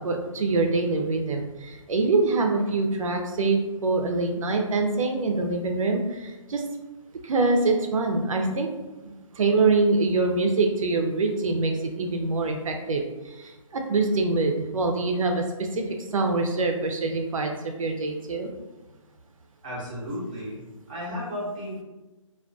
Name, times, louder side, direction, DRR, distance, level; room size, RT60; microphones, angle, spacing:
voice 1, 0.0-6.6 7.2-15.8 16.1-18.5, right 3 dB, 70° right, 3 dB, 0.4 m, -25 dB
voice 2, 19.6-20.6 20.9-21.8, left 1 dB, 15° right, -9 dB, 0.5 m, -33 dB
2.2 x 2.2 x 2.5 m, 1.1 s
hypercardioid pair, 175°, 17 cm